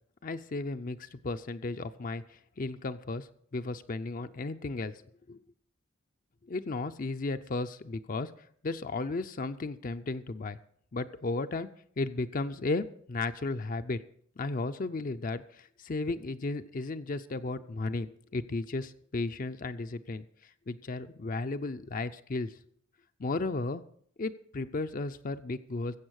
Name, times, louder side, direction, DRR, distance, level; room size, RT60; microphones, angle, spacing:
voice 1, 0.2-2.2 2.6-4.9 5.3-5.4 6.5-8.3 8.6-10.6 10.9-11.7 12.0-14.0 14.4-20.2 20.7-22.5 23.2-23.8 24.2-26.0, left 3 dB, 40° left, 9 dB, 0.5 m, -34 dB
15.0 x 7.7 x 6.3 m, 0.64 s
head